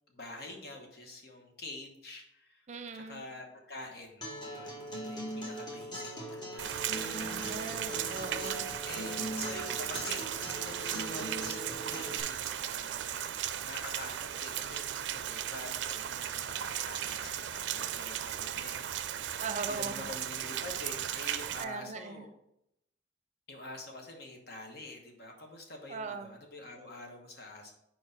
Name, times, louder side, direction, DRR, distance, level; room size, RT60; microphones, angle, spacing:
voice 1, 0.1-2.6 2.9-7.6 8.8-19.4 19.7-22.3 23.5-27.7, left 2 dB, 60° left, 2 dB, 1.1 m, -47 dB
voice 2, 2.7-3.3 7.1-8.7 19.4-20.1 21.6-22.3 25.9-26.4, right 4 dB, 40° right, 8 dB, 0.6 m, -40 dB
Acoustic guitar, 4.2-12.2, equal, 25° left, 1.3 m, -40 dB
Rain, 6.6-21.6, right 10 dB, 85° right, 0.4 m, -36 dB
4.6 x 4.6 x 5.2 m, 0.80 s
head